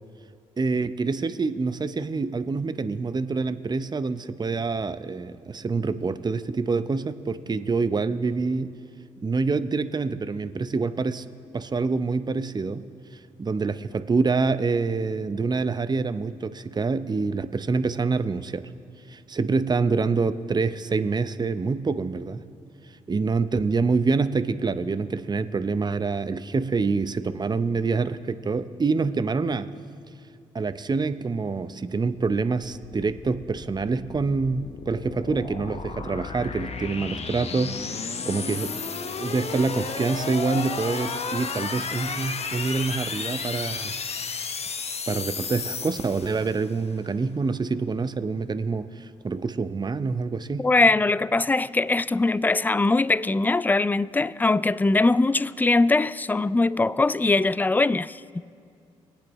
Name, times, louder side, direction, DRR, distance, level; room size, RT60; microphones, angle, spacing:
voice 1, 0.6-8.7 9.2-11.2 11.5-12.8 13.4-18.6 19.1-22.4 23.1-29.7 30.5-38.8 39.2-43.9 45.1-50.7, right 4 dB, 30° right, 0.6 m, -26 dB
sound 1, 32.6-46.8, left 5 dB, 45° left, 0.8 m, -33 dB
voice 2, 50.6-58.2, left 3 dB, 10° left, 0.3 m, -21 dB
22.0 x 8.3 x 3.1 m
hypercardioid pair, 40°, 15 cm